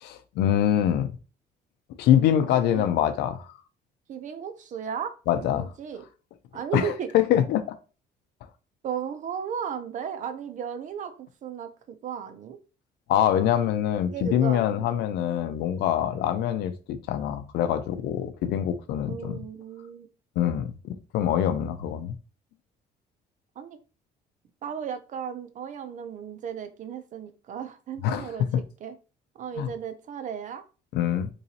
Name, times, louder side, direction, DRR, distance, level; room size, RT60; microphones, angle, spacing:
voice 1, 0.0-1.1 2.0-3.5 5.3-5.7 6.7-7.6 13.1-19.3 20.4-22.1 28.0-28.3 29.6-29.7 30.9-31.3, left 10 dB, 80° left, 0.5 m, -24 dB
voice 2, 4.1-6.0 6.5-7.1 8.8-11.7 12.0-12.6 14.1-14.9 19.1-20.1 23.6-23.8 24.6-28.5 28.8-29.0 29.3-30.6, right 8 dB, 50° right, 0.6 m, -35 dB
3.8 x 3.1 x 2.8 m
cardioid pair, 110°, 17 cm